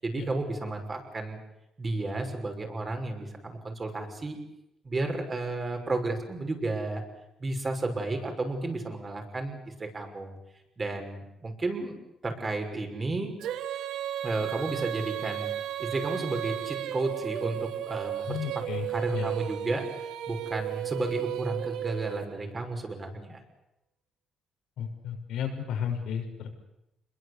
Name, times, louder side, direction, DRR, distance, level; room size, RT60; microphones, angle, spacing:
voice 1, 0.0-1.4 1.8-4.4 4.8-7.0 7.4-10.4 10.8-12.0 12.2-13.4 14.2-15.5 15.8-18.4 18.9-19.9 20.3-23.4, right 2 dB, 30° right, 4 dB, 6.2 m, -32 dB
Female singing, 13.4-22.6, right 12 dB, 85° right, 1.3 m, -34 dB
voice 2, 18.3-18.8 19.1-19.3 24.8-26.5, left 8 dB, 80° left, 4 dB, 6.1 m, -33 dB
27.0 x 22.0 x 8.4 m, 0.87 s
cardioid pair, 90°, 0 cm